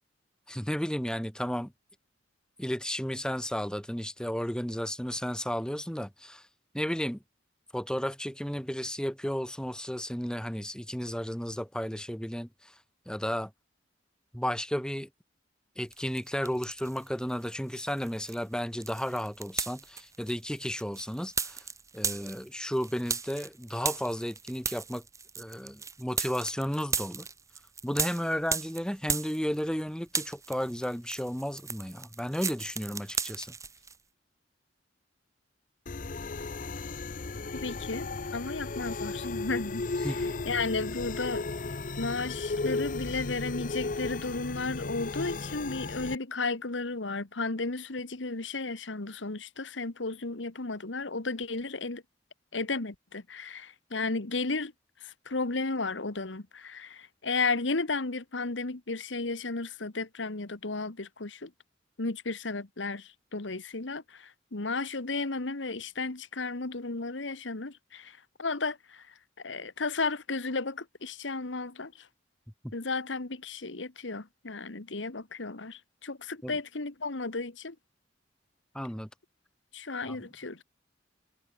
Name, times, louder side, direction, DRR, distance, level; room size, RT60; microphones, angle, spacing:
voice 1, 0.5-1.7 2.6-6.4 6.7-7.2 7.7-12.7 13.1-13.5 14.3-15.1 15.8-21.6 21.9-25.0 25.4-27.3 27.8-33.5 40.0-40.3 76.4-76.6 78.7-79.1 80.0-80.3, equal, 5° left, 2.4 m, -33 dB
sound 1, 15.9-17.1 17.4-29.8 30.1-34.0, right 5 dB, 15° right, 1.5 m, -36 dB
sound 2, 35.9-46.2, left 3 dB, 45° left, 0.7 m, -35 dB
voice 2, 37.6-40.1 40.4-41.4 42.0-52.0 52.5-54.7 55.0-61.5 62.0-68.1 68.4-69.0 69.4-71.9 72.7-77.7 79.7-80.6, left 3 dB, 85° left, 1.6 m, -34 dB
head